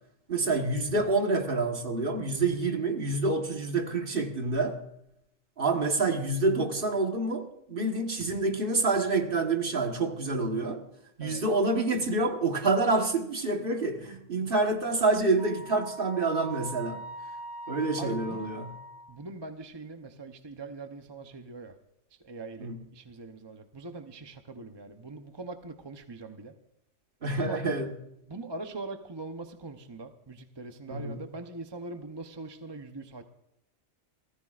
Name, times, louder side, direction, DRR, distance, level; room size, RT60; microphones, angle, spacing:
voice 1, 0.3-4.8 5.6-10.8 11.2-17.0 17.7-18.7 22.6-22.8 27.2-27.9 30.9-31.2, right 3 dB, 50° right, 1.7 m, -27 dB
Wind instrument woodwind instrument, 15.4-19.2, right 3 dB, 30° left, 2.4 m, -42 dB
voice 2, 18.0-18.6 19.1-21.7 22.2-26.5 27.4-27.6 28.3-33.2, right 3 dB, 25° right, 0.8 m, -42 dB
29.0 x 15.0 x 2.5 m
omnidirectional pair, 1.2 m